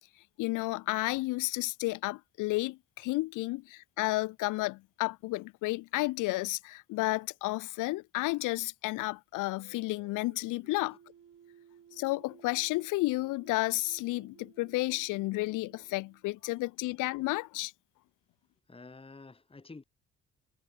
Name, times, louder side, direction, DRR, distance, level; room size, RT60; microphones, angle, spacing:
voice 1, 0.4-11.0 12.0-17.7, left 21 dB, 90° left, 0.5 m, -32 dB
sound 1, 9.4-16.7, right 8 dB, 55° right, 6.2 m, -59 dB
voice 2, 18.7-19.8, left 3 dB, 20° left, 1.9 m, -50 dB
cardioid pair, 90°, 30 cm